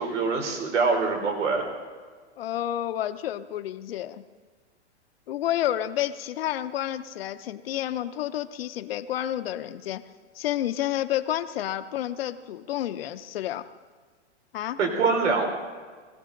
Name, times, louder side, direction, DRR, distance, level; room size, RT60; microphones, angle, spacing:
voice 1, 0.0-1.7 14.8-15.5, right 4 dB, 85° right, 2 dB, 3.6 m, -24 dB
voice 2, 2.4-4.2 5.3-10.0 10.3-13.6 14.5-14.8, left 12 dB, 55° left, 10 dB, 0.9 m, -30 dB
22.5 x 16.0 x 3.9 m, 1.5 s
hypercardioid pair, 160°, 35 cm